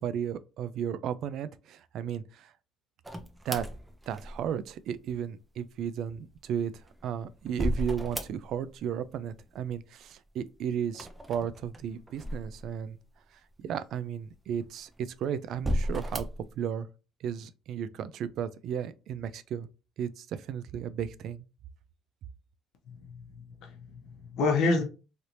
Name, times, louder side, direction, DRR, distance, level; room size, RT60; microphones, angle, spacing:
voice 1, 0.0-2.5 3.5-3.6 4.1-6.7 7.0-13.0 13.6-16.3 16.6-16.9 17.2-19.7 20.0-21.4, right 8 dB, 65° right, 0.3 m, -34 dB
sound 1, 3.0-4.7 6.5-8.8 9.0-9.7 10.9-13.0 13.6-13.7 14.5-15.1 15.5-16.5, equal, 15° right, 0.6 m, -35 dB
voice 2, 22.9-24.8, left 3 dB, 70° left, 0.9 m, -29 dB
3.2 x 2.8 x 2.6 m
supercardioid pair, 90°, 0 cm